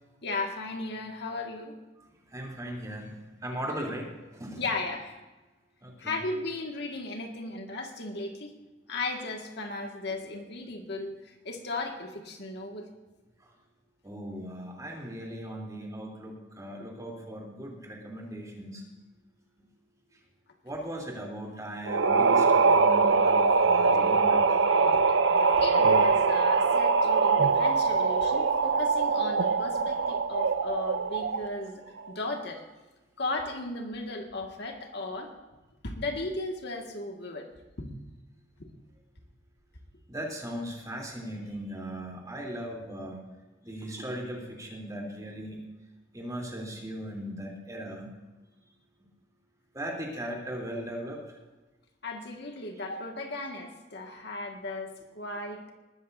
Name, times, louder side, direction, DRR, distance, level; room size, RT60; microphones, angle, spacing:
voice 1, 0.2-1.8 4.6-5.2 6.0-8.5 8.9-12.9 24.9-25.2 25.5-32.6 33.2-35.3 35.8-37.5 37.8-37.9 38.6-38.7 52.0-55.7, left 2 dB, 65° left, 2 dB, 1.9 m, -36 dB
voice 2, 2.3-4.1 4.3-4.6 5.8-6.1 14.0-18.8 20.6-24.5 40.1-43.2 43.6-45.6 46.1-48.1 49.7-51.2, equal, 20° right, -1 dB, 3.3 m, -38 dB
sound 1, 21.9-31.6, right 4 dB, 90° right, 0.6 m, -23 dB
20.0 x 13.5 x 2.7 m, 1.1 s
head